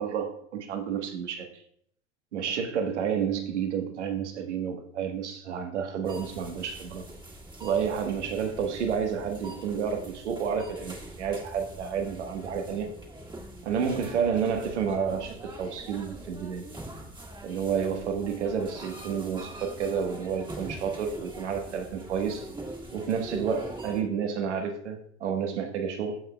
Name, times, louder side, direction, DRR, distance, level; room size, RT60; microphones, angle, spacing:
voice 1, 0.0-1.5 2.3-7.0 7.6-12.9 13.6-16.7 17.4-22.5 22.9-26.2, right 7 dB, 85° right, 1.4 m, -30 dB
sound 1, 6.0-24.0, right 1 dB, 15° right, 1.6 m, -43 dB
13.5 x 5.4 x 2.2 m
hypercardioid pair, 90°, 34 cm